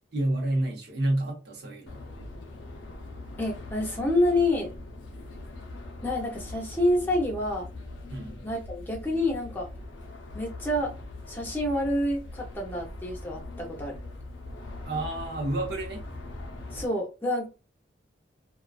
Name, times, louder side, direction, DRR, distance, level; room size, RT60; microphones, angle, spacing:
voice 1, 0.1-2.0 8.1-8.4 14.8-16.1, right 1 dB, 60° right, 0.7 m, -29 dB
sound 1, 1.9-16.9, left 2 dB, 80° left, 0.5 m, -41 dB
voice 2, 3.4-4.7 6.0-7.7 8.4-9.7 10.3-10.9 11.3-13.9 16.7-17.5, left 1 dB, 10° left, 0.6 m, -28 dB
2.4 x 2.2 x 2.3 m
head